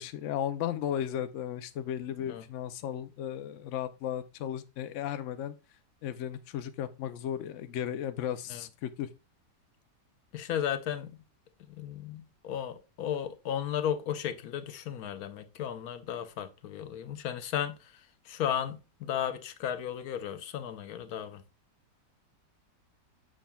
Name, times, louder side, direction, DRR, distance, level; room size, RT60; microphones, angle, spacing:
voice 1, 0.0-5.6 6.0-9.1, left 10 dB, 85° left, 0.6 m, -35 dB
voice 2, 10.3-11.2 11.7-17.9 18.3-21.4, left 9 dB, 65° left, 1.0 m, -34 dB
7.2 x 6.1 x 2.2 m
omnidirectional pair, 1.9 m